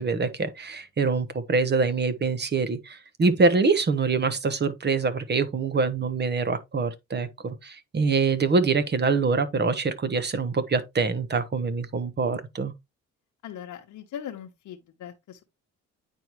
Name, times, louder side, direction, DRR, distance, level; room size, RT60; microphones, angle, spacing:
voice 1, 0.0-12.7, right 4 dB, 35° right, 1.1 m, -25 dB
voice 2, 13.4-15.4, left 9 dB, 75° left, 1.0 m, -40 dB
9.1 x 4.7 x 3.0 m
cardioid pair, 90°, 30 cm